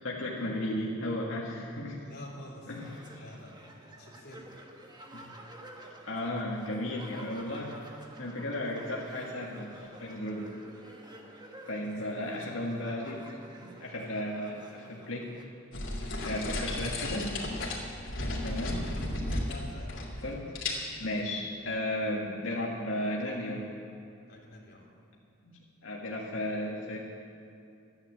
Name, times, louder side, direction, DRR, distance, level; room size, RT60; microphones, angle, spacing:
voice 1, 0.0-2.0 2.7-3.3 5.1-5.3 6.1-7.8 8.2-10.5 11.7-15.3 16.2-17.4 18.2-18.8 20.2-20.4 21.0-23.7 25.4-25.5 25.8-27.0, left 1 dB, 85° left, -4 dB, 1.9 m, -35 dB
voice 2, 2.0-2.7 3.2-3.5 3.8-4.5 16.2-16.5 18.3-20.1 24.3-24.9, left 1 dB, 50° left, -3 dB, 3.3 m, -49 dB
sound 1, 2.7-15.4, right 1 dB, 20° right, 1.5 m, -50 dB
sound 2, 15.7-20.3 20.6-21.1, left 1 dB, 70° left, 3.0 m, -34 dB
14.0 x 10.5 x 7.6 m, 2.6 s
head